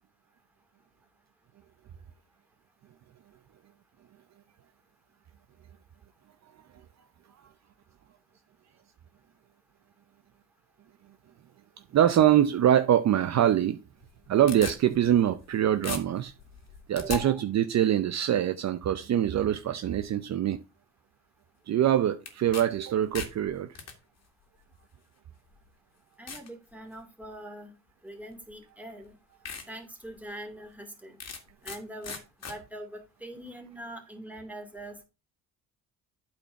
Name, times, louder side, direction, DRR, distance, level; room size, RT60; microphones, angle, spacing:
voice 1, 11.9-13.8 14.3-16.3 16.9-20.6 21.7-23.7, right 10 dB, 50° right, 0.7 m, -24 dB
sound 1, 14.0-15.5 15.8-17.2 22.2-22.6 23.0-23.9 24.8-24.9 25.5-25.6 26.3-26.5 27.0-27.4 28.5-28.6 29.0-29.1 29.4-29.7 30.1-30.2 31.2-31.8 32.0-32.6, left 5 dB, 50° left, 2.1 m, -38 dB
voice 2, 17.0-17.4 26.2-27.7 28.0-29.2 29.7-31.2 31.6-32.2 32.5-35.0, right 1 dB, 5° right, 2.5 m, -42 dB
8.8 x 4.4 x 5.8 m
cardioid pair, 90°, 34 cm